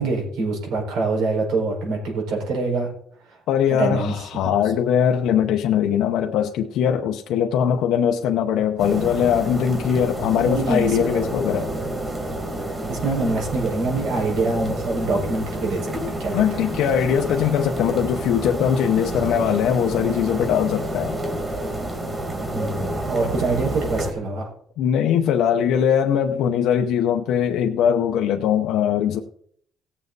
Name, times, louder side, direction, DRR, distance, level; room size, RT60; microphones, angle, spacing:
voice 1, 0.0-2.9 3.7-4.1 10.5-11.0 12.9-16.6 22.5-24.5, right 3 dB, 90° right, 4.9 m, -24 dB
voice 2, 3.5-11.7 16.3-21.2 24.8-29.2, left 8 dB, 70° left, 0.8 m, -21 dB
sound 1, 8.8-24.1, right 1 dB, 15° right, 2.1 m, -29 dB
18.0 x 7.3 x 4.0 m
cardioid pair, 170°, 0 cm